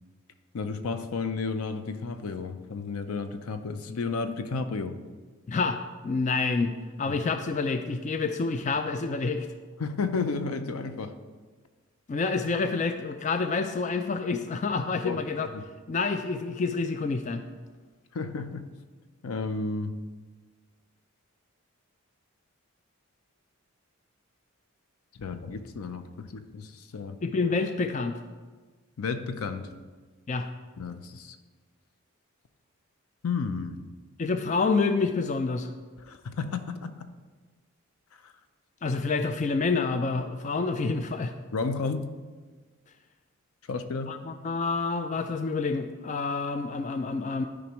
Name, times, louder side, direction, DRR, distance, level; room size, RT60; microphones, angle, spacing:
voice 1, 0.5-5.0 7.1-7.2 9.8-11.2 15.0-15.2 15.5-15.6 18.1-18.7 19.2-20.0 25.2-27.2 29.0-29.7 30.8-31.4 33.2-33.8 36.0-37.1 38.2-38.3 41.5-42.1 43.7-44.1, left 4 dB, 85° left, 9 dB, 0.5 m, -32 dB
voice 2, 5.5-6.7 7.0-9.5 12.1-15.5 15.9-17.4 27.2-28.2 30.3-30.5 34.2-35.7 38.8-41.3 44.1-47.4, left 4 dB, 35° left, 8 dB, 0.3 m, -28 dB
12.5 x 5.2 x 3.0 m, 1.4 s
head